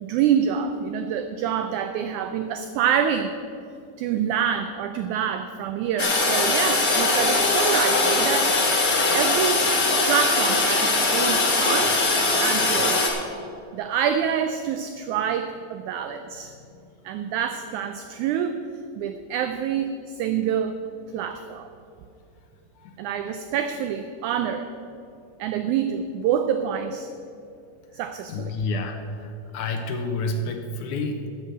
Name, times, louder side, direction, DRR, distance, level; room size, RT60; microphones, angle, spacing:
voice 1, 0.0-3.3 4.0-8.6 9.1-9.7 10.1-12.1 12.4-13.1 13.7-16.5 17.0-18.6 19.0-20.8 21.1-21.7 23.0-24.7 25.4-27.1 27.9-28.5, right 8 dB, 90° right, 8 dB, 1.7 m, -26 dB
Toilet flush, 6.0-13.1, left 3 dB, 55° left, 1.0 m, -21 dB
voice 2, 28.3-29.0 29.2-31.3, left 2 dB, 75° left, 5 dB, 2.0 m, -29 dB
12.5 x 5.8 x 7.8 m, 2.5 s
omnidirectional pair, 4.0 m